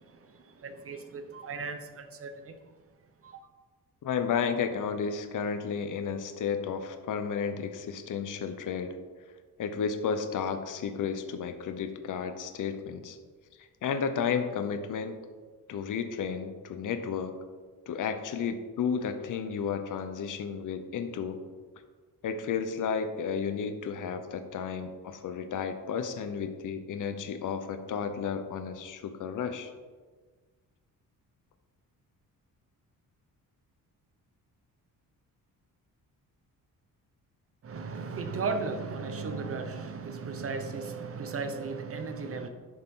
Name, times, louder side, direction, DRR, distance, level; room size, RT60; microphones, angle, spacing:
voice 1, 0.0-2.5 3.2-3.4 37.6-42.5, right 4 dB, 40° right, 1.0 m, -36 dB
voice 2, 4.0-9.0 9.6-13.2 13.6-15.2 15.7-17.4 17.9-21.4 22.2-29.7, left 6 dB, 60° left, 0.9 m, -32 dB
11.0 x 6.6 x 3.8 m
cardioid pair, 140°, 35 cm